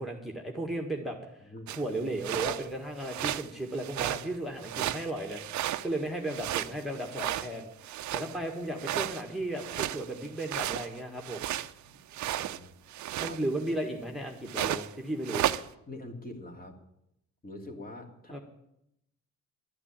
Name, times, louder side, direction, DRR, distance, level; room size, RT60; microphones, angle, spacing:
voice 1, 0.0-7.7 8.1-11.5 13.2-15.5 18.3-18.4, right 1 dB, ahead, 2 dB, 1.8 m, -35 dB
voice 2, 1.4-1.7 11.8-12.0 12.3-12.7 13.2-13.4 15.9-16.8 17.4-18.4, left 2 dB, 30° left, 3 dB, 2.7 m, -44 dB
sound 1, 1.7-1.8 2.2-2.7 3.0-3.5 3.8-4.3 4.6-6.0 6.2-8.4 8.8-11.7 12.1-12.6 12.9-13.7 14.5-14.9 15.2-15.7, right 13 dB, 70° right, 0.7 m, -33 dB
12.0 x 9.8 x 9.0 m, 0.80 s
cardioid pair, 90°, 30 cm